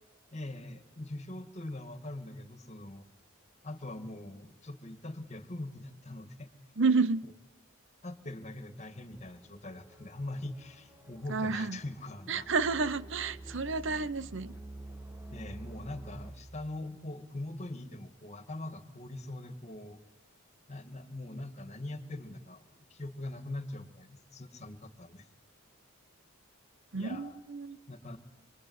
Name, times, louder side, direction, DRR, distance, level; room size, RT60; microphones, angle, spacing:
voice 1, 0.3-3.1 3.6-6.5 8.0-12.5 15.3-20.0 20.7-25.3 26.9-27.4 27.9-28.2, left 1 dB, 35° left, 2.1 m, -42 dB
voice 2, 6.8-7.2 11.3-11.8 12.3-14.5 26.9-27.8, right 4 dB, 60° right, 1.0 m, -30 dB
sound 1, 9.1-16.3, right 1 dB, 10° right, 2.1 m, -48 dB
25.0 x 24.5 x 9.7 m
head